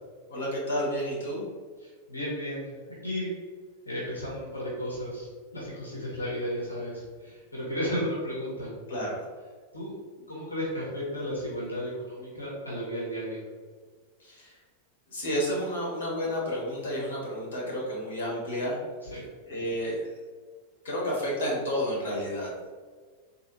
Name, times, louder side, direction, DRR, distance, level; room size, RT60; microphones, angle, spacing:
voice 1, 0.3-1.4 8.9-9.2 14.2-14.6 15.1-18.8 19.5-20.0 20.8-22.5, equal, 65° left, -4 dB, 1.5 m, -31 dB
voice 2, 1.8-2.7 3.0-3.3 3.8-8.7 9.7-10.0 10.3-13.4 19.1-19.2, equal, 80° left, -6 dB, 1.4 m, -34 dB
4.2 x 3.3 x 3.1 m, 1.5 s
figure-of-eight pair, 90°, 0 cm